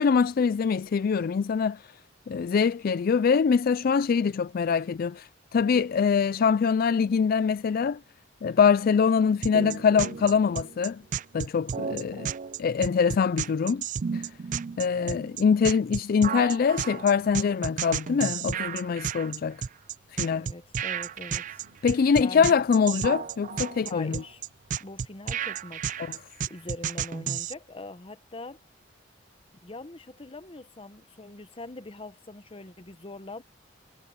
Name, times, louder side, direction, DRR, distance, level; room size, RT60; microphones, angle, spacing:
voice 1, 0.0-1.8 2.3-8.0 8.4-11.0 11.3-12.3 12.6-13.8 14.1-14.3 14.8-19.6 20.1-20.5 21.8-24.2 26.1-26.2, left 6 dB, 50° left, 0.3 m, -24 dB
sound 1, 9.4-27.5, right 7 dB, 40° right, 0.4 m, -32 dB
sound 2, 9.6-13.0 16.8-20.2 21.2-25.0, right 1 dB, 70° right, 4.8 m, -61 dB
voice 2, 20.3-21.6 22.1-22.5 23.8-24.4 24.8-28.6 29.6-33.4, left 2 dB, 30° left, 0.9 m, -42 dB
head